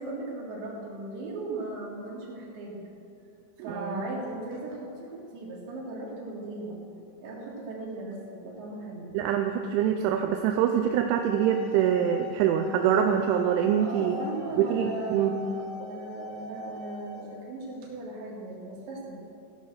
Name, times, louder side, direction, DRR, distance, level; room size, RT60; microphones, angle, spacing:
voice 1, 0.0-2.8 3.6-6.8 7.2-9.2 13.8-19.2, right 2 dB, 70° right, -4 dB, 4.3 m, -37 dB
voice 2, 3.6-4.0 9.1-14.2 14.6-15.4, right 9 dB, 90° right, 5 dB, 3.0 m, -25 dB
sound 1, 11.1-17.2, left 4 dB, 70° left, 3.2 m, -42 dB
16.0 x 5.5 x 6.5 m, 2.6 s
omnidirectional pair, 5.4 m